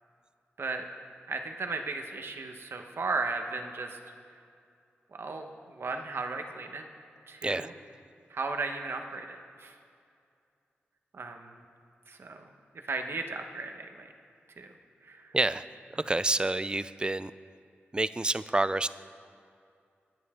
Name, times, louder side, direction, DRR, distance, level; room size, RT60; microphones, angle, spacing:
voice 1, 1.3-4.0 5.1-6.9 7.3-7.7 8.3-9.7 11.1-11.6 12.1-12.4 12.9-14.1 14.6-14.7 15.0-15.3, right 3 dB, 65° right, 5 dB, 1.2 m, -35 dB
voice 2, 15.3-15.7 15.9-17.3 17.9-18.9, right 2 dB, 20° right, 15 dB, 0.4 m, -28 dB
22.5 x 9.5 x 3.7 m, 2.4 s
cardioid pair, 75°, 4 cm